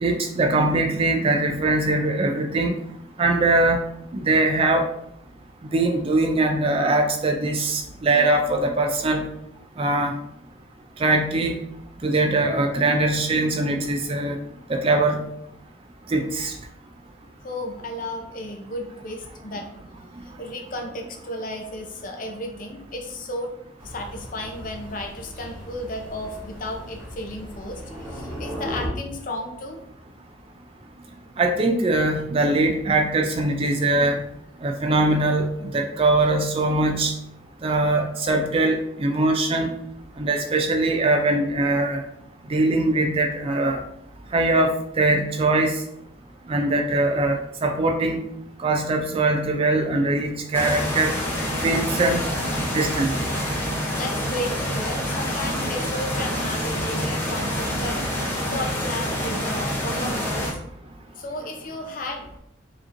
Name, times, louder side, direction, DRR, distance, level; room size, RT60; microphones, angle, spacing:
voice 1, 0.0-2.7 3.2-3.8 4.2-4.9 5.7-9.3 9.8-10.1 11.0-11.6 12.0-14.4 14.7-15.2 16.1-16.5 31.4-34.2 34.6-37.1 37.6-39.7 40.2-42.0 42.5-43.8 44.3-44.7 45.0-45.7 46.5-48.2 48.6-51.1 51.6-52.3 52.7-53.1, right 2 dB, 30° right, 4 dB, 0.4 m, -21 dB
voice 2, 17.4-19.7 20.4-23.5 23.8-29.8 53.9-60.6 61.1-62.4, left 1 dB, 45° left, 2 dB, 0.6 m, -34 dB
Thunder, 23.8-28.9, equal, 10° right, 1.2 m, -37 dB
sound 1, 50.5-60.5, equal, 10° left, 0.8 m, -27 dB
4.9 x 2.9 x 2.6 m, 0.75 s
head